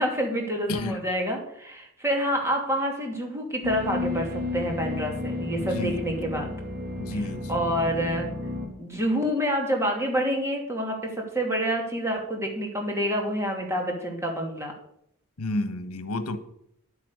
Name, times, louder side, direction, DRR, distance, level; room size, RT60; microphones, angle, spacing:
voice 1, 0.0-6.5 7.5-8.3 8.8-14.7, equal, 15° right, 1 dB, 2.6 m, -27 dB
voice 2, 0.7-1.0 5.6-6.0 7.0-7.6 15.4-16.4, left 2 dB, 85° left, 11 dB, 1.3 m, -31 dB
sound 1, 3.6-8.7, left 2 dB, 50° right, 2.8 m, -32 dB
10.5 x 8.6 x 6.6 m, 0.72 s
head